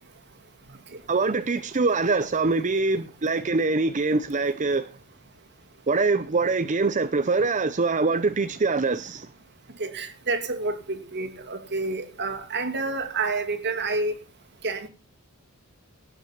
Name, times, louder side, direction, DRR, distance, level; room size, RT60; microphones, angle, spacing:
voice 1, 1.1-4.9 5.9-9.3, right 3 dB, 35° right, 0.7 m, -24 dB
voice 2, 9.8-14.1 14.6-14.9, right 3 dB, 50° right, 2.4 m, -29 dB
18.0 x 6.9 x 5.8 m
head